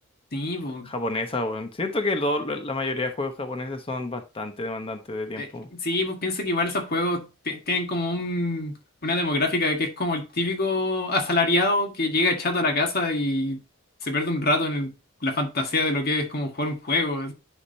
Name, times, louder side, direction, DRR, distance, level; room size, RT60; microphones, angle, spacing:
voice 1, 0.3-0.9 5.4-8.7 9.0-13.6 14.0-14.9 15.2-17.3, left 2 dB, 45° left, 1.6 m, -25 dB
voice 2, 0.9-5.7, left 2 dB, 25° left, 0.9 m, -29 dB
9.9 x 5.0 x 2.7 m
head